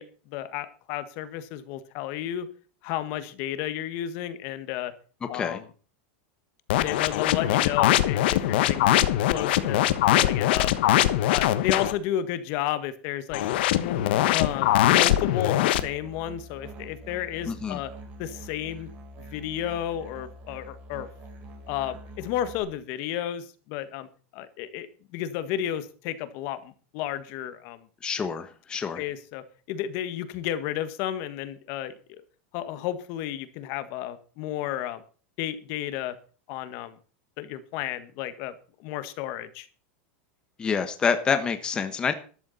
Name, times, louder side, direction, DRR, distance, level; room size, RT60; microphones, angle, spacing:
voice 1, 0.0-2.5 2.8-4.9 5.3-5.6 6.8-8.9 9.3-9.8 10.1-11.0 11.3-13.4 13.8-17.9 18.2-18.9 19.2-21.1 21.7-24.1 24.3-24.9 25.1-27.9 29.0-32.2 32.5-35.0 35.4-36.2 36.5-37.0 37.4-38.5 38.8-39.7, left 11 dB, 40° left, 13 dB, 1.6 m, -32 dB
sound 1, 6.7-11.9 13.3-15.8, left 13 dB, 60° left, 1.3 m, -22 dB
Musical instrument, 15.7-22.6, right 2 dB, 25° right, 4.8 m, -45 dB
voice 2, 17.5-17.8 28.0-29.0 40.6-42.1, left 6 dB, 15° left, 8 dB, 1.3 m, -27 dB
13.5 x 12.0 x 4.3 m, 0.39 s
supercardioid pair, 170°, 6 cm